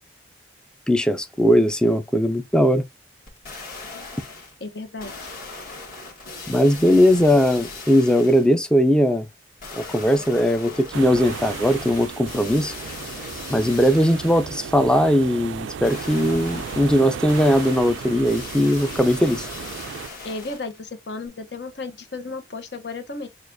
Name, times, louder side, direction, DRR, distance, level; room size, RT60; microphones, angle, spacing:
voice 1, 0.9-2.8 6.5-9.3 9.7-12.8 13.5-19.5, equal, 5° left, 0.4 m, -19 dB
sound 1, 3.3-4.6 5.0-8.6 9.6-14.6 15.8-20.8 21.3-21.4, left 3 dB, 50° left, 1.5 m, -38 dB
voice 2, 4.6-5.1 20.2-23.3, left 3 dB, 70° left, 0.9 m, -34 dB
sound 2, 10.9-20.1, right 7 dB, 90° right, 0.4 m, -35 dB
6.4 x 2.4 x 2.6 m
head